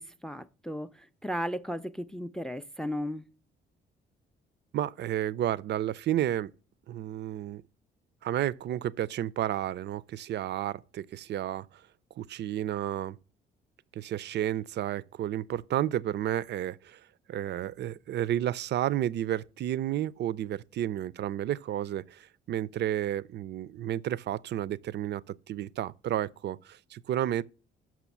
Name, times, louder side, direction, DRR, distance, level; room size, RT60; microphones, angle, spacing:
voice 1, 0.0-3.2, equal, 5° left, 0.4 m, -35 dB
voice 2, 4.7-6.5 6.9-7.6 8.2-11.7 12.2-13.2 13.9-17.0 17.3-25.2 25.5-27.4, right 12 dB, 60° right, 0.4 m, -31 dB
6.2 x 6.0 x 7.0 m
cardioid pair, 90°, 20 cm